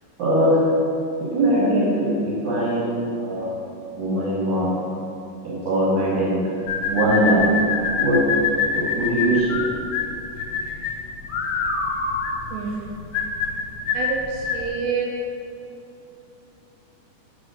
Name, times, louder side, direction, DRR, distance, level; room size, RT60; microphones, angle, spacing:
voice 1, 0.2-0.7 1.2-3.5 3.9-4.8 5.4-6.4 6.9-7.6 7.9-8.3 8.7-9.6, right 1 dB, 60° right, -9 dB, 2.9 m, -21 dB
sound 1, 6.7-14.7, left 5 dB, 75° left, 2.1 m, -25 dB
voice 2, 12.5-13.1 13.9-15.1, right 5 dB, 85° right, -2 dB, 2.8 m, -28 dB
5.9 x 4.8 x 5.1 m, 2.6 s
omnidirectional pair, 5.0 m